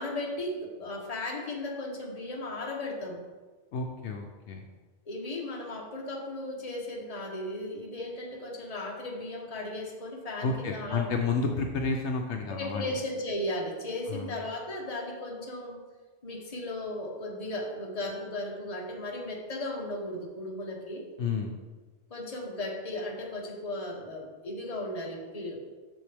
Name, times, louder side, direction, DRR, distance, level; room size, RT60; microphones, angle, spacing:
voice 1, 0.0-3.3 5.1-11.1 12.5-15.8 16.2-21.1 22.1-25.6, left 1 dB, 30° left, 0 dB, 1.1 m, -36 dB
voice 2, 3.7-4.6 10.4-12.9 14.1-14.4 21.2-21.5, left 4 dB, 70° left, 2 dB, 0.9 m, -31 dB
7.6 x 6.3 x 3.4 m, 1.3 s
omnidirectional pair, 1.3 m